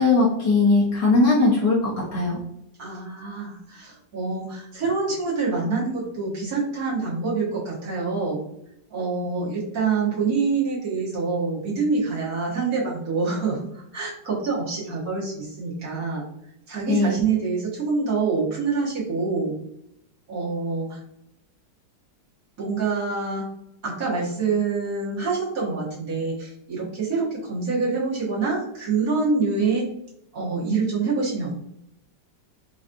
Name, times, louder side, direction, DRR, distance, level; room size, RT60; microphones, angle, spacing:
voice 1, 0.0-2.4 16.9-17.2, left 3 dB, 70° left, -5 dB, 1.5 m, -19 dB
voice 2, 2.8-8.4 8.9-16.2 16.7-19.6 20.3-21.0 22.6-23.5 23.8-29.8 30.3-31.6, right 4 dB, 55° right, -8 dB, 1.9 m, -26 dB
4.9 x 3.1 x 2.5 m, 0.79 s
omnidirectional pair, 2.0 m